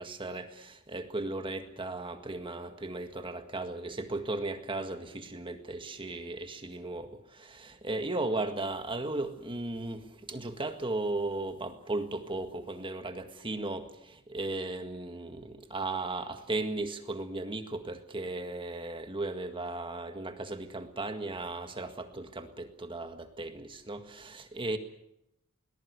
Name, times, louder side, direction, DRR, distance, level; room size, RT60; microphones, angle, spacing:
voice 1, 0.0-24.8, right 2 dB, 25° right, 7 dB, 1.8 m, -36 dB
22.0 x 20.0 x 8.1 m, 0.81 s
head